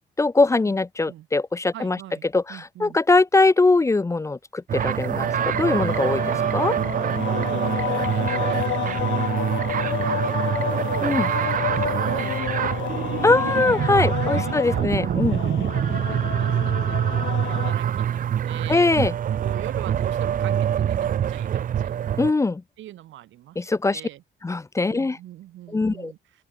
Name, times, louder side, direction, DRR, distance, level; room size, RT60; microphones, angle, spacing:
voice 1, 0.2-2.0 2.3-6.8 11.0-11.3 13.2-15.4 18.7-19.1 22.2-22.6 23.6-24.0 24.4-25.2 25.7-26.1, left 3 dB, 15° left, 1.1 m, -21 dB
voice 2, 1.7-3.0 7.3-10.4 10.7-12.8 13.1-13.6 14.2-18.9 19.4-22.0 22.8-24.2 24.9-26.4, right 14 dB, 90° right, 7.5 m, -41 dB
sound 1, 4.7-22.3, right 9 dB, 45° right, 1.0 m, -25 dB
sound 2, 5.2-17.7, left 14 dB, 85° left, 3.5 m, -30 dB
open air
cardioid pair, 160°, 19 cm